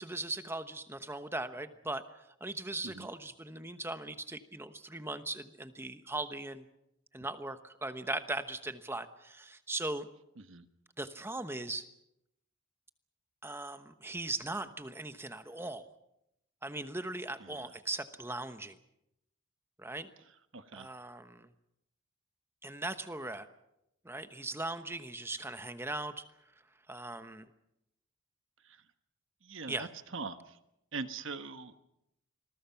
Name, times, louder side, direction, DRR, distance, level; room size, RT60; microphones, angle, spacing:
voice 1, 0.0-2.0 2.4-6.6 7.1-10.1 11.0-11.9 13.4-15.9 16.6-18.8 19.8-20.1 20.7-21.5 22.6-23.5 24.0-26.3 26.9-27.5 29.7-29.9, right 2 dB, 10° right, 10 dB, 1.1 m, -39 dB
voice 2, 20.5-20.9 29.4-30.6 30.9-31.7, right 4 dB, 60° right, 9 dB, 1.4 m, -42 dB
27.5 x 21.0 x 5.8 m, 0.83 s
head